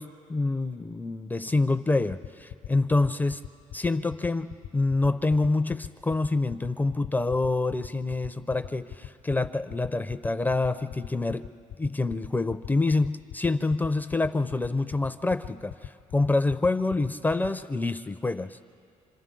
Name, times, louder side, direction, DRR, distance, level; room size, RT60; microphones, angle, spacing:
voice 1, 0.0-3.4 3.7-11.5 11.8-18.6, left 3 dB, 15° left, 10 dB, 0.5 m, -27 dB
sound 1, 2.1-17.5, left 11 dB, 70° left, 0.6 m, -40 dB
27.5 x 27.0 x 3.8 m, 2.3 s
cardioid pair, 125°, 14 cm